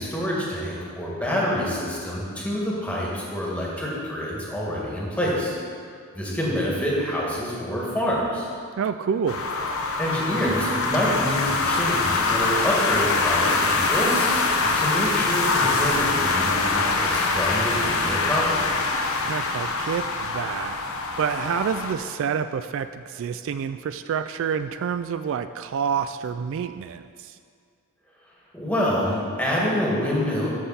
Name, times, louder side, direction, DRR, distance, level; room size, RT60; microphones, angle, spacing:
voice 1, 0.0-5.5 6.1-8.5 10.0-18.7 28.5-30.5, equal, 5° left, -5 dB, 2.0 m, -27 dB
voice 2, 8.8-9.4 19.2-20.8 21.2-27.4, right 7 dB, 65° right, 10 dB, 0.3 m, -28 dB
sound 1, 9.3-21.9, left 3 dB, 75° left, 0.9 m, -24 dB
13.5 x 5.8 x 4.2 m, 2.2 s
head